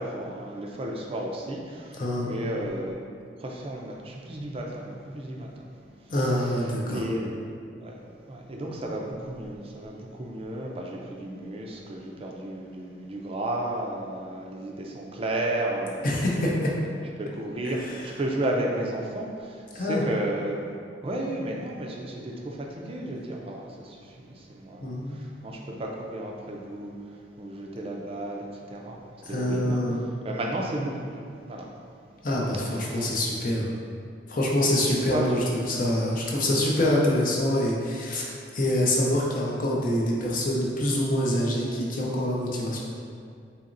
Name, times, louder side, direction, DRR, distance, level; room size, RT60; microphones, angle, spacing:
voice 1, 0.0-3.0 3.4-5.5 6.2-8.0 8.3-20.6 21.0-27.0 27.4-29.0 29.2-31.2 31.5-31.7 32.5-33.1 34.6-35.4 36.8-36.9, right 1 dB, 30° right, -1 dB, 0.4 m, -33 dB
voice 2, 1.9-2.3 6.1-7.0 16.0-16.7 17.6-18.0 19.7-20.0 24.8-25.2 29.2-30.0 32.2-33.7 34.3-42.8, left 1 dB, 50° left, -3 dB, 0.6 m, -26 dB
4.1 x 2.9 x 2.5 m, 2.3 s
head